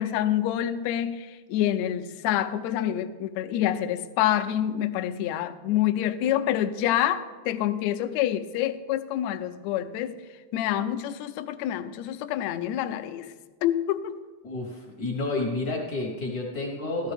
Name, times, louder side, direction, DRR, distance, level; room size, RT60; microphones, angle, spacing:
voice 1, 0.0-10.2 10.5-13.3 13.6-14.2, left 11 dB, 85° left, 1.6 m, -27 dB
voice 2, 14.4-17.1, left 2 dB, 60° left, 1.0 m, -30 dB
14.0 x 12.5 x 3.4 m
omnidirectional pair, 3.7 m